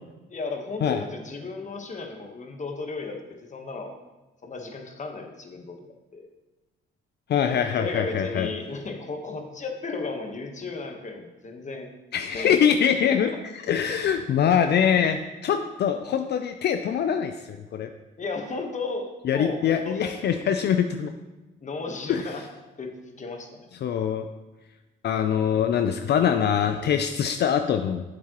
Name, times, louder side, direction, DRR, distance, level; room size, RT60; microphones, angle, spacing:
voice 1, 0.3-3.2 3.5-4.0 4.4-5.8 6.1-6.3 7.4-11.9 12.3-12.6 13.0-13.2 18.2-20.1 20.5-20.7 21.6-22.4 22.8-23.7, left 3 dB, 40° left, 3 dB, 1.2 m, -34 dB
voice 2, 7.3-8.5 12.1-17.9 19.2-21.1 22.1-22.4 23.8-24.3 25.0-28.0, left 8 dB, 60° left, 7 dB, 0.5 m, -24 dB
7.5 x 7.4 x 3.0 m, 1.1 s
cardioid pair, 90°, 20 cm